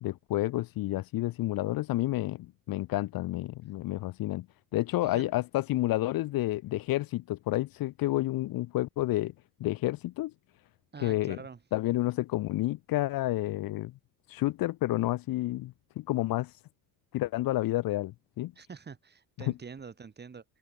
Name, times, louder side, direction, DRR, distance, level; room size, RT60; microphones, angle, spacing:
voice 1, 0.0-4.5 4.7-9.3 9.6-10.3 11.0-11.4 11.7-13.9 14.3-16.5 17.1-18.5, left 16 dB, 65° left, 0.7 m, -30 dB
voice 2, 10.9-11.6 18.6-20.4, right 5 dB, 25° right, 6.0 m, -45 dB
open air
cardioid pair, 160°, 38 cm